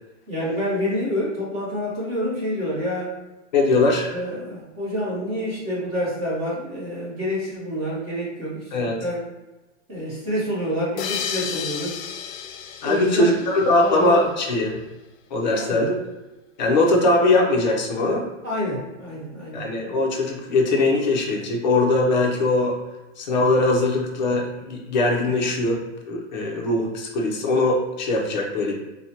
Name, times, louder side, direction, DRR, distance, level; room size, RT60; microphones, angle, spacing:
voice 1, 0.3-3.1 4.1-9.2 9.9-12.0 12.8-13.3 13.8-14.2 15.4-15.9 18.4-19.7, equal, 15° right, -7 dB, 0.7 m, -28 dB
voice 2, 3.5-4.2 8.7-9.0 12.8-14.8 15.3-16.0 16.6-18.3 19.5-22.8 23.2-25.8 26.1-28.7, left 2 dB, 35° left, 0 dB, 0.5 m, -21 dB
sound 1, 11.0-14.3, left 8 dB, 85° left, 0.5 m, -32 dB
4.3 x 2.1 x 2.7 m, 1.1 s
supercardioid pair, 170°, 39 cm